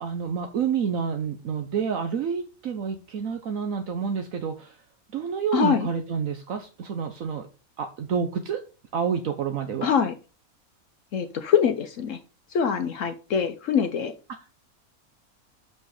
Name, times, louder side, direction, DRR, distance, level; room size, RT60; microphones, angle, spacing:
voice 1, 0.0-4.8 5.1-7.5 7.8-8.6 8.9-9.9, right 6 dB, 70° right, 6 dB, 1.2 m, -28 dB
voice 2, 5.5-5.9 9.8-10.2 11.1-12.2 12.5-14.1, left 7 dB, 65° left, 9 dB, 1.0 m, -24 dB
7.1 x 5.8 x 4.8 m, 0.33 s
omnidirectional pair, 1.5 m